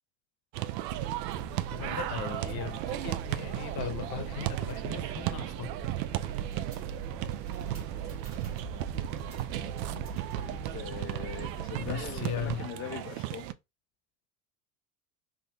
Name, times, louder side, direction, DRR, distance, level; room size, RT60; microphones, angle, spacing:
sound 1, 0.5-13.5, right 14 dB, 80° right, 0.6 m, -35 dB
sound 2, 0.9-12.6, right 5 dB, 25° right, 1.1 m, -42 dB
voice 1, 1.7-5.7 11.8-12.7, left 7 dB, 50° left, 0.9 m, -37 dB
voice 2, 10.3-13.5, left 10 dB, 30° left, 0.4 m, -42 dB
3.6 x 2.2 x 3.8 m
supercardioid pair, 95°, 50 cm